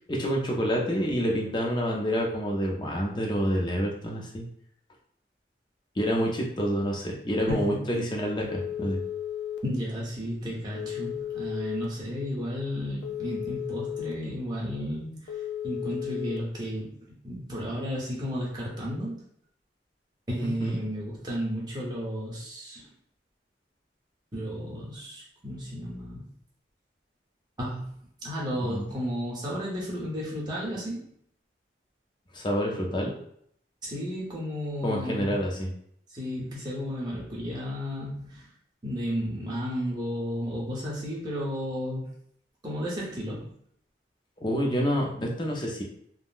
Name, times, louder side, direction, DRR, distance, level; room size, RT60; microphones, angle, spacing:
voice 1, 0.1-4.4 6.0-9.0 20.6-20.8 28.6-28.9 32.3-33.1 34.8-35.7 44.4-45.8, equal, 25° left, -1 dB, 0.5 m, -28 dB
voice 2, 7.5-7.8 9.6-15.4 15.6-19.2 20.3-22.9 24.3-26.3 27.6-27.8 28.2-31.1 33.8-35.4 36.1-38.5 38.8-42.1 42.6-43.5, equal, 25° right, -5 dB, 0.8 m, -33 dB
Telephone, 8.5-9.6 10.7-11.8 13.0-14.1 15.3-16.4, left 10 dB, 85° left, 0.4 m, -34 dB
3.6 x 2.0 x 2.5 m, 0.67 s
head